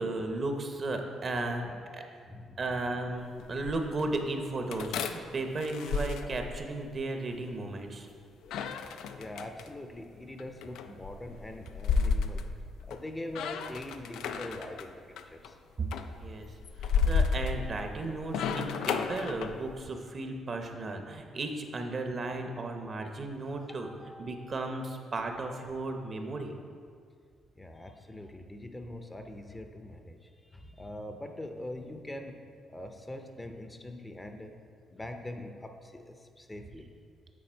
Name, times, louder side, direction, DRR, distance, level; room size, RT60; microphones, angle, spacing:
voice 1, 0.0-2.0 2.6-8.1 15.8-15.9 16.2-16.5 16.8-23.9 24.2-26.6, right 2 dB, 45° right, 5 dB, 0.7 m, -35 dB
voice 2, 2.3-3.1 9.2-12.5 12.8-15.0 15.3-15.6 23.8-24.7 27.6-32.4 32.7-34.5 34.9-36.9, left 1 dB, 15° left, 5 dB, 0.5 m, -43 dB
sound 1, 3.2-4.1 4.7-7.0 8.4-9.7 10.4-13.0 13.3-14.9 15.2-15.5 15.9-19.8, left 5 dB, 85° left, 0.3 m, -32 dB
8.4 x 4.2 x 4.4 m, 2.2 s
cardioid pair, 90°, 0 cm